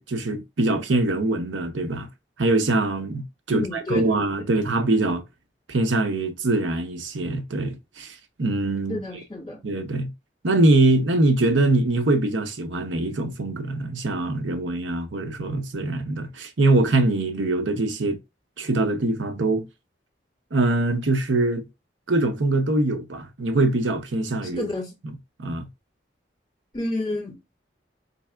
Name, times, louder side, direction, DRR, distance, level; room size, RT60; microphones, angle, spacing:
voice 1, 0.0-2.1 2.4-5.2 5.7-9.0 9.6-10.1 10.4-18.2 18.6-19.7 20.5-21.6 22.1-24.7 25.0-25.1 25.4-25.7, right 2 dB, 90° right, 0.8 m, -23 dB
voice 2, 3.5-4.1 8.9-9.6 24.4-24.9 26.7-27.6, left 2 dB, 20° left, 2.0 m, -30 dB
4.1 x 3.3 x 2.3 m
head